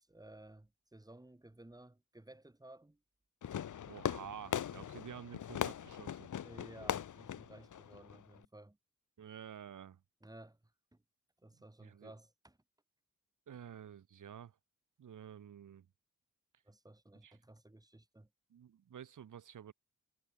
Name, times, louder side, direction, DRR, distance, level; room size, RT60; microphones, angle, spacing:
voice 1, 0.0-3.0 6.4-8.8 10.2-10.6 10.9-11.0 11.4-12.6 16.6-18.3, right 1 dB, 10° right, 5.1 m, -56 dB
Fireworks, 3.4-8.4, left 9 dB, 75° left, 1.6 m, -40 dB
voice 2, 3.8-6.3 9.2-10.0 11.8-12.1 13.5-14.6 15.0-15.9 17.2-17.4 18.5-19.7, right 9 dB, 75° right, 3.5 m, -50 dB
cardioid pair, 90°, 31 cm